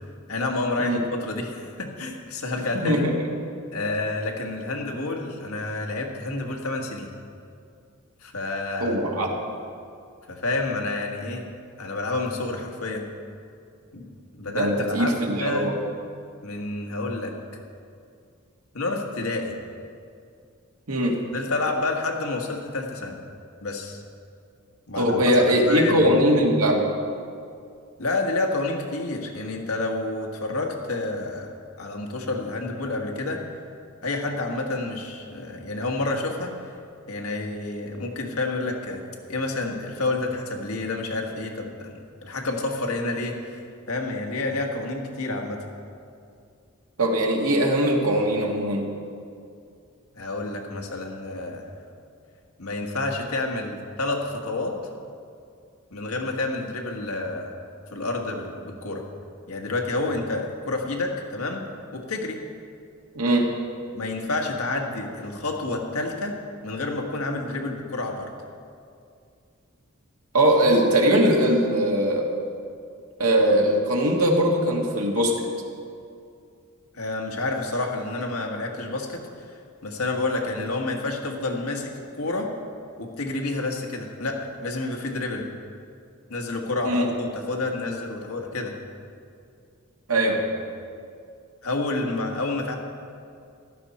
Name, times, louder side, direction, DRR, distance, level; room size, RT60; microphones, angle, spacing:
voice 1, 0.3-3.1 3.7-7.1 8.2-9.0 10.3-11.4 11.8-13.1 13.9-15.7 16.4-17.6 18.7-19.6 21.3-23.2 23.6-24.0 24.9-26.1 28.0-31.5 31.8-33.4 34.0-36.8 37.1-39.0 39.3-45.6 50.1-51.7 52.6-54.8 55.9-57.5 57.9-59.0 59.5-61.6 61.9-62.4 63.9-66.4 66.6-68.3 76.9-82.5 83.0-85.5 86.3-88.7 91.6-92.7, left 2 dB, 75° left, 1 dB, 1.6 m, -29 dB
voice 2, 2.8-3.3 8.8-9.3 14.5-15.8 20.9-21.2 25.0-26.8 47.0-48.9 63.2-63.5 70.3-72.3 73.2-75.5 86.8-87.1 90.1-90.4, equal, 90° right, 0 dB, 1.9 m, -21 dB
14.5 x 12.0 x 4.3 m, 2.4 s
head